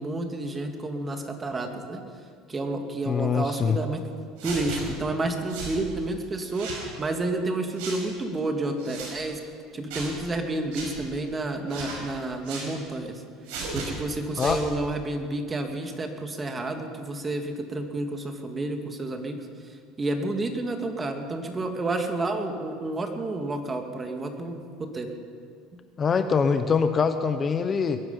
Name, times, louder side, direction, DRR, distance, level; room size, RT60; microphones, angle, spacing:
voice 1, 0.0-2.0 2.5-4.1 4.4-9.4 9.7-13.2 13.7-19.5 20.0-25.1, right 2 dB, 25° right, 5 dB, 2.1 m, -30 dB
voice 2, 3.1-3.8 14.4-14.6 26.0-28.0, left 6 dB, 30° left, 9 dB, 0.8 m, -24 dB
sound 1, 4.4-4.8 5.5-5.8 6.5-6.8 7.8-8.0 8.8-9.1 9.9-10.1 10.7-10.9 11.7-12.0 12.4-12.7 13.5-13.9 14.3-14.6, right 4 dB, 75° right, 5.4 m, -35 dB
21.5 x 11.0 x 5.6 m, 2.1 s
supercardioid pair, 100°, 0 cm